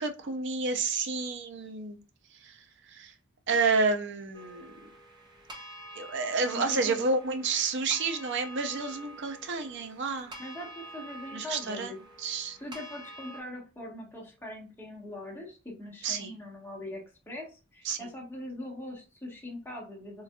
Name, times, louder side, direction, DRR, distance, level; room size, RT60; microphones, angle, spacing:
voice 1, 0.0-2.0 2.4-2.6 2.9-3.1 3.5-4.8 6.0-10.3 11.3-11.9 12.2-12.6 16.0-16.3 17.8-18.1, right 4 dB, 55° right, 6 dB, 0.5 m, -30 dB
sound 1, 4.3-13.4, right 1 dB, 20° right, 0.8 m, -47 dB
voice 2, 6.5-7.0 10.4-12.0 12.6-20.2, left 1 dB, 10° left, -3 dB, 1.2 m, -41 dB
3.8 x 2.5 x 2.2 m, 0.32 s
head